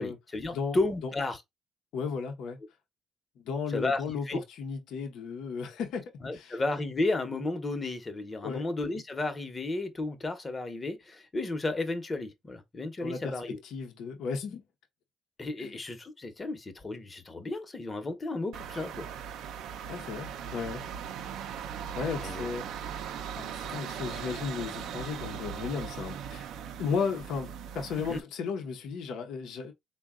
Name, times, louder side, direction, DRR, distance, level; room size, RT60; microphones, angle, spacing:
voice 1, 0.0-1.4 3.7-4.4 6.2-13.6 15.4-19.1 22.2-22.5 28.1-28.2, left 2 dB, 30° left, 0.9 m, -33 dB
voice 2, 0.5-1.1 1.9-2.6 3.4-6.6 8.4-8.7 13.0-14.6 15.6-15.7 19.9-20.8 22.0-22.7 23.3-26.4 26.8-29.7, left 5 dB, 75° left, 0.8 m, -35 dB
sound 1, 18.5-28.2, right 8 dB, 80° right, 0.5 m, -39 dB
3.9 x 2.3 x 3.6 m
cardioid pair, 80°, 0 cm